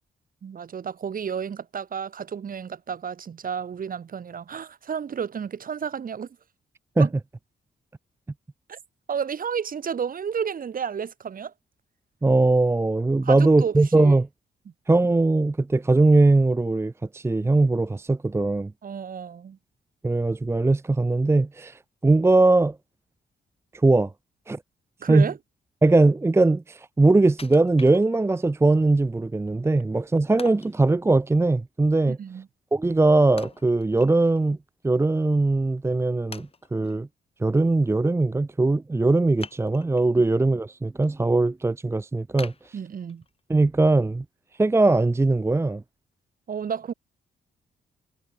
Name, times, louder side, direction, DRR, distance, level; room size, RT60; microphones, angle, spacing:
voice 1, 0.4-6.3 7.0-7.1 8.7-8.8 9.1-11.5 13.2-14.1 18.8-19.6 25.0-25.4 32.1-32.5 42.7-43.2 46.5-46.9, right 7 dB, 50° right, 4.6 m, -31 dB
voice 2, 12.2-14.3 14.9-18.7 20.0-22.8 23.7-24.1 24.5-24.6 25.1-25.3 25.8-32.2 32.7-34.6 34.8-37.1 37.4-42.8 43.5-44.2 44.6-45.8, right 2 dB, 15° right, 0.7 m, -20 dB
Wood, 27.4-28.5 29.0-29.1 30.4-30.8 33.4-34.5 34.8-34.9 35.6-35.7 36.3-37.0 39.4-40.1 40.6-41.1 41.5-41.6 42.4-43.4 43.9-44.0, left 4 dB, 30° left, 6.5 m, -43 dB
cardioid pair, 120°, 18 cm